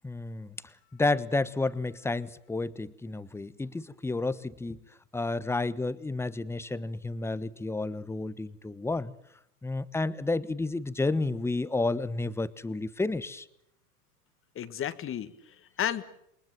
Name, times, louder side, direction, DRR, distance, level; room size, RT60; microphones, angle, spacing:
voice 1, 0.0-0.5 0.9-4.8 5.1-9.1 9.6-13.4, left 2 dB, 5° left, 16 dB, 1.1 m, -31 dB
voice 2, 14.6-16.0, left 10 dB, 25° left, 13 dB, 1.8 m, -33 dB
28.5 x 22.5 x 7.6 m, 0.75 s
hypercardioid pair, 105°, 47 cm